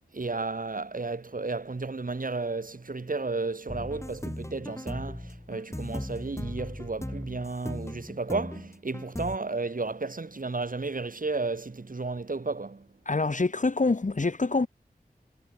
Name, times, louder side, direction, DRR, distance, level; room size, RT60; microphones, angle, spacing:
voice 1, 0.1-12.9, right 3 dB, 60° right, 3.7 m, -33 dB
sound 1, 3.7-9.4, left 1 dB, 15° left, 6.1 m, -38 dB
voice 2, 13.1-14.7, left 3 dB, 55° left, 2.0 m, -25 dB
wide cardioid pair, 45°, 16 cm